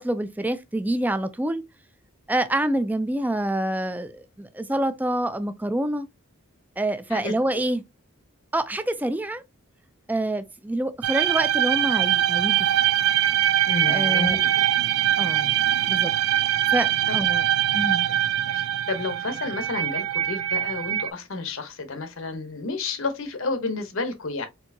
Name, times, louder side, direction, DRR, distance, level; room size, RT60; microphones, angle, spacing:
voice 1, 0.0-1.6 2.3-6.1 6.8-7.8 8.5-9.4 10.1-12.7 13.9-14.4 15.2-15.5 15.9-16.1 16.7-17.5 17.7-18.1, right 1 dB, 10° right, 0.3 m, -26 dB
sound 1, 11.0-21.1, right 12 dB, 85° right, 0.4 m, -23 dB
voice 2, 13.7-14.5 17.1-17.2 18.5-24.5, left 3 dB, 70° left, 0.8 m, -31 dB
4.4 x 2.8 x 2.6 m
head